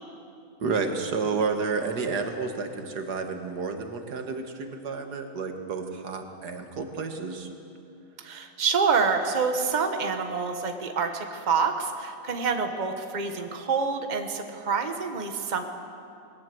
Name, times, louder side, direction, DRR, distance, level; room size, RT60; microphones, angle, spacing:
voice 1, 0.6-7.5, right 4 dB, 90° right, 5 dB, 2.1 m, -30 dB
voice 2, 8.2-15.6, right 5 dB, 30° right, 6 dB, 1.3 m, -27 dB
20.0 x 17.5 x 7.7 m, 2.6 s
omnidirectional pair, 1.7 m